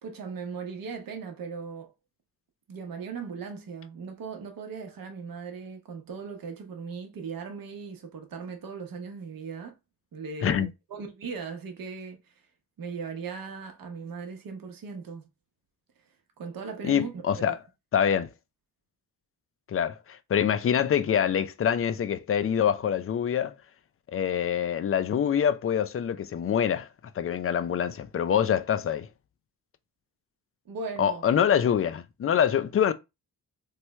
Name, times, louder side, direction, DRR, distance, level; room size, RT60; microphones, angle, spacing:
voice 1, 0.0-1.9 2.7-9.7 10.1-12.3 12.8-15.3 16.4-17.6 30.7-31.2, right 5 dB, 55° right, 0.9 m, -38 dB
voice 2, 16.8-17.6 17.9-18.3 19.7-23.6 24.1-26.9 27.2-29.1 31.0-32.9, left 8 dB, 35° left, 0.4 m, -25 dB
3.1 x 2.3 x 3.0 m
cardioid pair, 60°, 41 cm